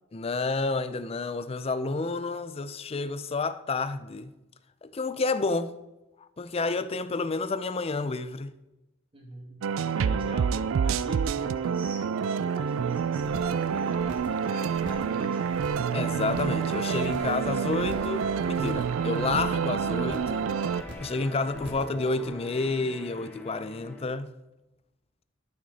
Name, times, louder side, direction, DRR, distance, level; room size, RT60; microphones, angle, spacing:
voice 1, 0.1-4.3 4.8-5.7 6.2-8.5 15.9-20.6 21.0-24.3, left 3 dB, 30° left, 0.4 m, -30 dB
voice 2, 9.1-15.7, right 1 dB, 25° right, 2.3 m, -44 dB
sound 1, 9.6-20.8, right 6 dB, 80° right, 0.3 m, -28 dB
sound 2, 13.0-24.0, left 1 dB, 5° left, 0.9 m, -44 dB
sound 3, 13.2-13.6 13.9-14.4 14.7-15.2 15.5-15.9 16.2-16.7 17.0-17.4 17.7-18.2 18.5-19.0 19.2-19.7 20.0-20.4 20.7-21.2 21.5-21.9 22.2-22.3, right 1 dB, 60° right, 1.7 m, -43 dB
12.5 x 6.2 x 4.1 m
head